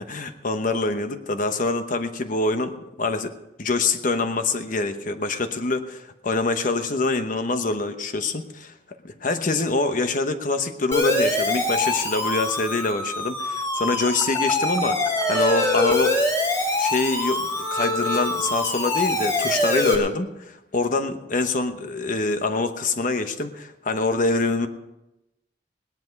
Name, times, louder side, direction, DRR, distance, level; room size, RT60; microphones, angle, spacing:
voice 1, 0.0-3.3 3.6-8.7 9.0-15.0 15.3-16.2 16.8-24.7, left 3 dB, 50° left, 8 dB, 1.0 m, -25 dB
Siren, 10.9-20.0, left 2 dB, 15° left, 2.2 m, -24 dB
18.0 x 10.5 x 5.3 m, 0.93 s
head